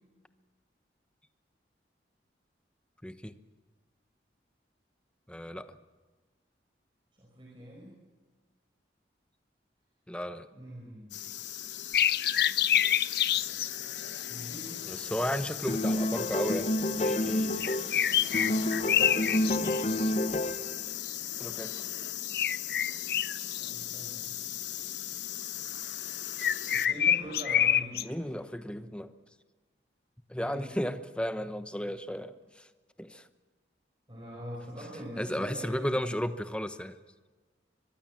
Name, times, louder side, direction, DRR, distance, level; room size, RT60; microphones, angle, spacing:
voice 1, 3.0-3.4 5.3-5.8 10.1-10.5 14.9-17.7 21.4-21.8 28.0-29.1 30.3-32.7 33.0-33.3 35.2-37.0, equal, 5° left, 10 dB, 0.9 m, -34 dB
voice 2, 7.1-7.9 10.5-11.2 14.3-14.9 18.8-19.4 23.4-24.4 26.7-28.3 28.6-28.7 30.4-30.6 34.1-36.1, equal, 25° right, -3 dB, 5.2 m, -43 dB
sound 1, 11.1-26.9, left 12 dB, 85° left, 1.0 m, -38 dB
sound 2, 11.9-13.7 17.6-20.0 22.3-23.7 26.4-28.0, left 10 dB, 55° left, 0.6 m, -26 dB
sound 3, 15.7-18.0 18.3-20.8, left 1 dB, 40° left, 1.0 m, -29 dB
24.0 x 22.5 x 7.5 m, 1.3 s
head